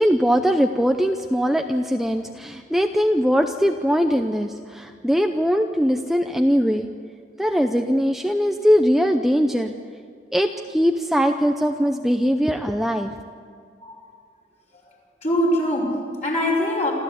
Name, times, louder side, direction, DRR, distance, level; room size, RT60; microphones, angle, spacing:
voice 1, 0.0-6.9 7.4-9.7 10.3-13.1, equal, ahead, 5 dB, 0.6 m, -21 dB
voice 2, 15.2-16.9, left 1 dB, 40° left, -3 dB, 5.7 m, -23 dB
27.5 x 14.5 x 8.4 m, 2.1 s
head